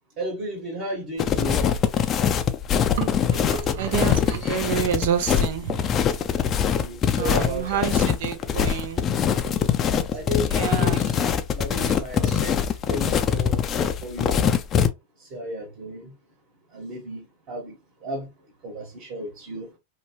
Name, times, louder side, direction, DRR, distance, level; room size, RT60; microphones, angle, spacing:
voice 1, 0.2-1.6 3.8-4.6 6.8-7.9 10.1-11.2 11.6-12.5 12.9-13.6 14.0-14.4 15.3-16.0 16.7-17.7 18.0-18.3 18.6-19.7, equal, 45° right, 1.4 m, -33 dB
sound 1, 1.2-14.9, left 8 dB, 35° left, 0.4 m, -23 dB
voice 2, 3.0-5.8 7.1-9.1 10.5-11.0, right 9 dB, 70° right, 0.7 m, -28 dB
2.8 x 2.2 x 2.9 m
hypercardioid pair, 105°, 0 cm